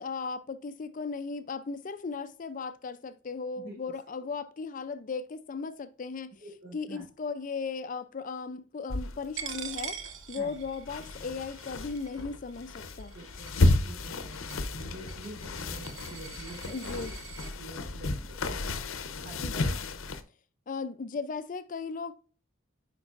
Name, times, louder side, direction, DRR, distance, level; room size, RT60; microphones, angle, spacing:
voice 1, 0.0-6.4 6.7-10.0 10.3-13.1 16.7-17.1 19.4-19.8 20.7-22.1, left 4 dB, 40° left, 0.4 m, -37 dB
voice 2, 6.4-7.0 10.3-10.6 13.1-17.1 17.4-18.8 19.2-19.8, right 2 dB, 55° right, 3.9 m, -47 dB
sound 1, 8.9-20.2, left 2 dB, 80° left, 0.7 m, -32 dB
Coin (dropping), 9.4-17.5, right 8 dB, 70° right, 0.9 m, -44 dB
8.6 x 5.3 x 2.5 m
head